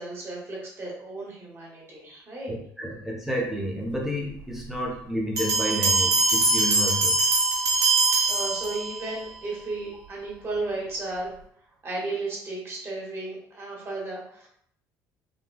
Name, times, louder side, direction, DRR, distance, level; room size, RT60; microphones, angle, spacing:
voice 1, 0.0-2.5 7.9-11.3 11.8-14.5, right 2 dB, 35° right, -4 dB, 1.3 m, -34 dB
voice 2, 2.5-7.2, equal, 5° right, -2 dB, 0.6 m, -30 dB
sound 1, 5.4-9.1, right 3 dB, 60° right, 1.1 m, -22 dB
3.8 x 2.2 x 2.3 m, 0.67 s
supercardioid pair, 95°, 7 cm